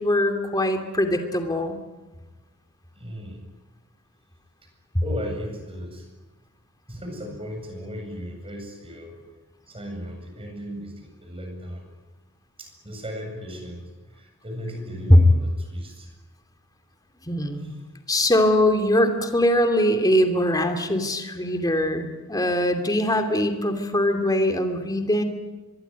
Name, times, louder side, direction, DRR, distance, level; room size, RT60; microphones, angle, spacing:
voice 1, 0.0-1.8 15.1-15.2 17.3-17.7 18.1-25.2, left 1 dB, 20° left, 6 dB, 2.9 m, -21 dB
voice 2, 2.9-3.5 5.0-6.1 6.9-9.2 9.7-11.9 12.6-16.2 17.6-17.8, equal, 25° right, 4 dB, 7.8 m, -36 dB
25.0 x 22.5 x 9.6 m, 1.2 s
head